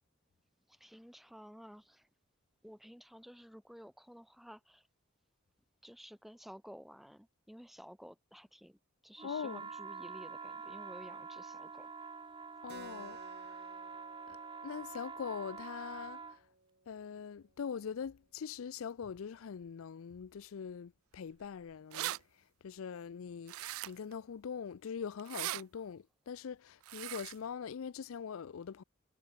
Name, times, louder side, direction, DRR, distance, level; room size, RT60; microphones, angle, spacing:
voice 1, 0.7-2.1 2.6-4.9 5.8-11.9 13.5-13.6, equal, ahead, 1.9 m, -53 dB
voice 2, 9.2-9.6 12.6-13.5 14.3-16.5 16.9-22.1 22.6-28.8, left 6 dB, 75° left, 0.4 m, -43 dB
sound 1, 9.2-16.4, right 5 dB, 25° right, 0.9 m, -46 dB
Keyboard (musical), 12.7-17.8, right 3 dB, 50° right, 4.8 m, -58 dB
sound 2, 21.4-21.5 21.7-22.2 23.5-24.1 25.2-25.6 26.8-27.4, right 15 dB, 85° right, 0.4 m, -39 dB
head